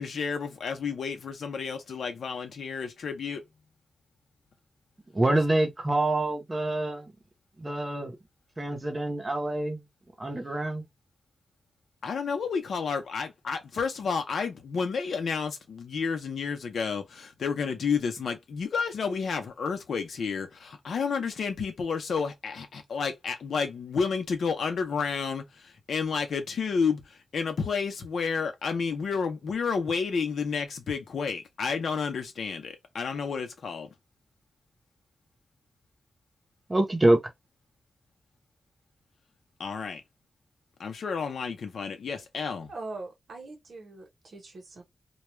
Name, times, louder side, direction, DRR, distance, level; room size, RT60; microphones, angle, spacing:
voice 1, 0.0-3.4 12.0-27.0 27.3-33.9 39.6-40.0 40.8-42.7, left 5 dB, 80° left, 0.7 m, -31 dB
voice 2, 5.1-7.1 7.6-8.2 8.6-9.8 10.2-10.8 36.7-37.2, right 1 dB, 20° right, 0.8 m, -26 dB
voice 3, 42.7-44.8, right 3 dB, 60° right, 1.0 m, -42 dB
2.3 x 2.2 x 3.0 m
wide cardioid pair, 120°, 0 cm